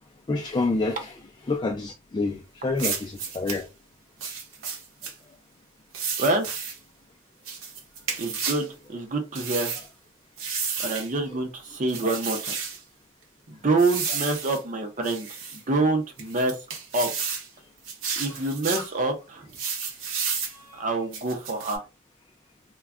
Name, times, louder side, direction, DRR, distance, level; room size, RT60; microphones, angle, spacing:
voice 1, 0.3-1.2 1.5-3.7 12.0-12.1 18.1-18.2 18.7-18.9 20.5-20.9, left 3 dB, 25° left, 0.3 m, -28 dB
sound 1, 2.8-3.6 4.2-5.1 5.9-6.8 7.5-8.7 9.4-9.9 10.4-11.1 11.9-12.8 13.8-14.6 15.0-15.6 16.2-17.5 17.9-18.9 19.5-20.6 21.1-21.8, right 6 dB, 85° right, 0.8 m, -32 dB
voice 2, 6.2-6.5 8.2-9.7 10.8-12.5 13.5-15.3 15.5-16.6 16.9-17.1 18.2-19.5 20.7-21.8, right 2 dB, 40° right, 0.6 m, -26 dB
2.2 x 2.1 x 3.5 m
head